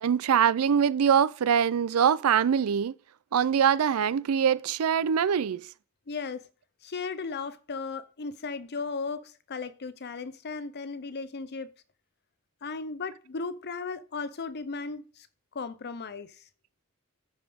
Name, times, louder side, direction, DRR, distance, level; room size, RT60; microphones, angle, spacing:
voice 1, 0.0-2.9 3.3-5.7, right 8 dB, 75° right, 0.4 m, -23 dB
voice 2, 6.1-6.4 6.8-11.7 12.6-15.0 15.5-16.3, left 4 dB, 50° left, 0.8 m, -36 dB
14.5 x 5.2 x 3.5 m
head